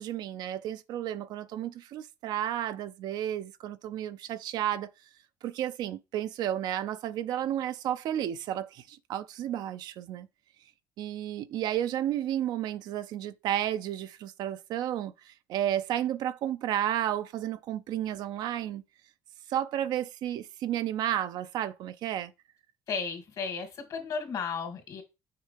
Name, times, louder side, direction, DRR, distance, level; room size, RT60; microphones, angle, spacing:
voice 1, 0.0-4.9 5.4-10.3 11.0-18.8 19.5-22.3, right 11 dB, 70° right, 0.4 m, -32 dB
voice 2, 22.9-25.0, left 5 dB, 60° left, 2.5 m, -34 dB
6.7 x 5.4 x 3.4 m
supercardioid pair, 80°, 7 cm